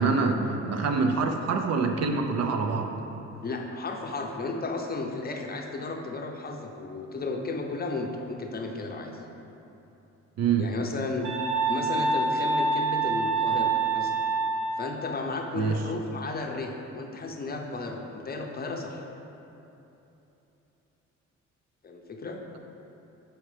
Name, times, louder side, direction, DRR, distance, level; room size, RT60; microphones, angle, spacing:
voice 1, 0.0-2.9 10.4-10.7 15.5-15.8, right 4 dB, 60° right, 5 dB, 0.6 m, -25 dB
voice 2, 3.4-9.2 10.6-11.3 11.7-14.2 14.8-19.0 21.8-22.4, left 3 dB, 30° left, 2 dB, 0.6 m, -34 dB
sound 1, 11.2-14.9, right 3 dB, 85° right, 0.8 m, -26 dB
7.2 x 4.5 x 3.3 m, 3.0 s
cardioid pair, 90°, 30 cm